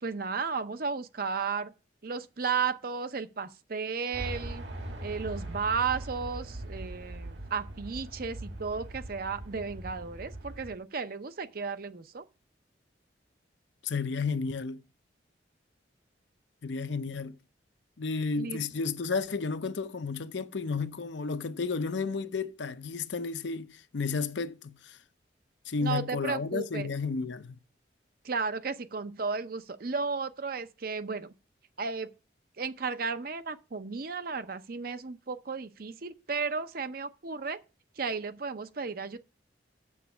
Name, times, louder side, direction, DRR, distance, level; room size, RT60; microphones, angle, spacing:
voice 1, 0.0-1.7 2.0-4.6 5.0-12.2 18.4-18.6 25.8-26.9 28.2-31.3 31.8-32.1 32.6-37.6 38.0-39.2, right 5 dB, 50° right, 0.6 m, -34 dB
sound 1, 4.1-10.8, right 1 dB, 70° right, 1.9 m, -41 dB
voice 2, 13.8-14.8 16.6-17.4 18.0-25.0 25.7-27.6, left 4 dB, 75° left, 0.6 m, -32 dB
7.2 x 7.0 x 6.0 m
head